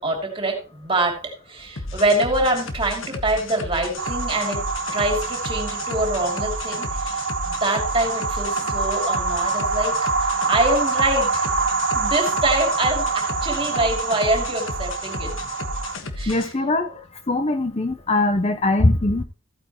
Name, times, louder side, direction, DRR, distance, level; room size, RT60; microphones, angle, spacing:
voice 1, 0.0-4.7 4.9-10.1 10.5-11.5 11.9-15.3 16.2-16.5, right 2 dB, 25° right, 2 dB, 2.8 m, -25 dB
sound 1, 1.8-16.5, left 2 dB, 65° left, 1.4 m, -33 dB
sound 2, 4.0-16.0, right 3 dB, 60° right, 1.8 m, -26 dB
voice 2, 16.3-16.9 17.3-19.2, left 2 dB, 30° left, 9 dB, 0.6 m, -21 dB
15.0 x 9.0 x 3.0 m, 0.34 s
head